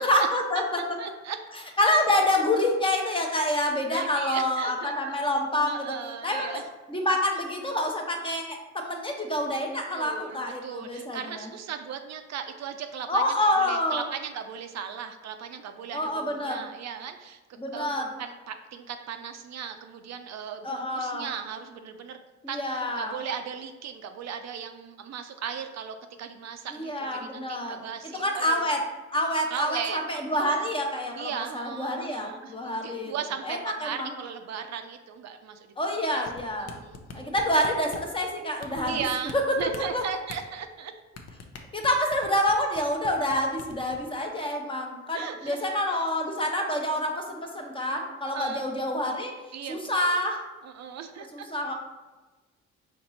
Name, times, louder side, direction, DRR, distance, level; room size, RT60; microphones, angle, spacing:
voice 1, 0.0-0.8 1.8-5.9 6.2-6.6 6.9-11.5 13.1-14.0 15.9-16.6 17.6-18.1 20.6-21.3 22.4-23.1 26.7-27.8 28.1-28.8 29.1-33.1 33.4-34.1 35.8-36.7 37.1-39.0 39.3-39.4 39.9-40.0 41.7-49.3 49.7-50.4 51.3-51.7, left 1 dB, 15° left, 2 dB, 0.8 m, -27 dB
voice 2, 1.0-1.4 3.9-5.1 5.7-6.6 9.9-17.9 18.2-22.2 22.5-28.6 29.5-30.6 31.2-36.2 36.6-37.3 38.8-40.9 45.1-46.0 48.3-48.6 49.5-50.2 50.6-51.5, right 7 dB, 60° right, 7 dB, 0.5 m, -37 dB
sound 1, 36.3-38.1 38.6-39.3 39.6-40.4 41.2-42.8 43.0-43.3 43.6-44.0, left 5 dB, 55° left, 0.7 m, -42 dB
4.3 x 2.9 x 4.1 m, 1.2 s
cardioid pair, 90°, 30 cm